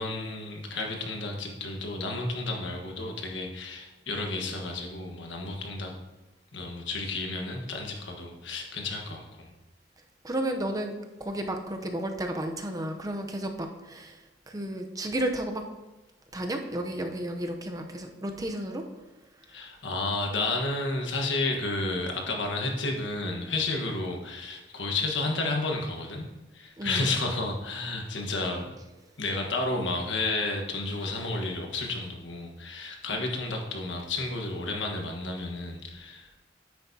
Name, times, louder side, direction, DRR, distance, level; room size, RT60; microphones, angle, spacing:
voice 1, 0.0-5.9 6.5-9.5 19.5-26.3 26.5-28.7 29.2-36.3, left 2 dB, 90° left, 2 dB, 1.4 m, -31 dB
voice 2, 10.2-14.2 14.5-15.6 16.3-18.8 26.8-27.1 33.1-33.3, right 1 dB, 20° right, 4 dB, 0.7 m, -32 dB
9.6 x 8.3 x 2.8 m, 1.1 s
head